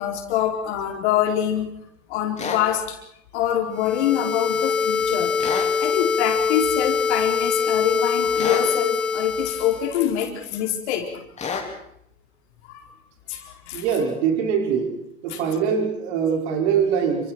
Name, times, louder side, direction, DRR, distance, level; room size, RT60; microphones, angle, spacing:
voice 1, 0.0-1.7 2.1-3.0 3.3-5.3 5.8-11.2 12.7-12.9 13.3-13.8 15.3-15.4, left 10 dB, 55° left, 3 dB, 4.4 m, -25 dB
sound 1, 2.4-2.6 5.4-5.7 8.4-8.7 11.4-11.7, left 5 dB, 15° left, 4.7 m, -28 dB
sound 2, 3.7-9.9, left 5 dB, 85° left, 4.7 m, -23 dB
voice 2, 13.7-14.9 15.2-17.3, right 7 dB, 55° right, 2 dB, 5.7 m, -23 dB
29.0 x 26.5 x 4.6 m, 0.74 s
hypercardioid pair, 105°, 41 cm